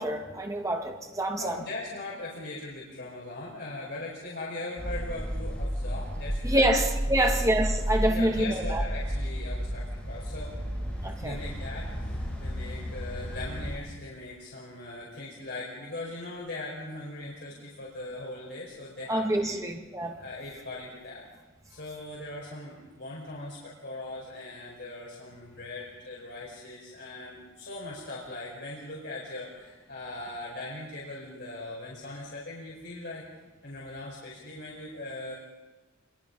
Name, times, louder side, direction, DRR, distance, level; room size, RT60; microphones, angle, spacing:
voice 1, 0.0-1.6 6.4-8.8 11.0-11.4 19.1-20.2, right 1 dB, 15° right, 3 dB, 2.0 m, -27 dB
voice 2, 1.3-6.7 7.1-7.3 8.1-10.5 11.2-19.6 20.2-21.2 21.7-33.2 33.6-35.3, left 2 dB, 55° left, -4 dB, 5.0 m, -40 dB
sound 1, 4.8-13.8, equal, 5° left, 6.6 m, -32 dB
25.5 x 22.5 x 5.5 m, 1.2 s
head